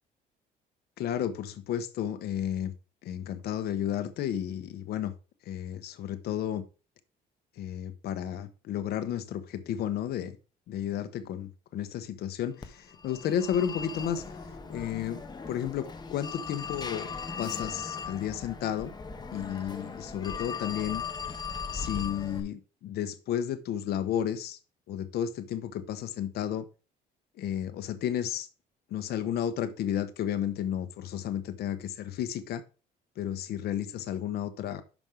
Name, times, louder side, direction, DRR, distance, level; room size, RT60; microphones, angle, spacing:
voice 1, 1.0-2.7 3.0-5.1 5.5-6.6 7.6-10.4 10.7-14.4 14.7-15.2 15.5-17.1 17.4-18.9 19.3-21.0 21.7-24.6 24.9-26.7 27.4-28.5 28.9-32.6 33.2-34.8, left 10 dB, 70° left, 1.1 m, -32 dB
Telephone, 12.6-22.4, left 5 dB, 25° left, 1.2 m, -39 dB
6.2 x 5.4 x 5.0 m
cardioid pair, 110°, 17 cm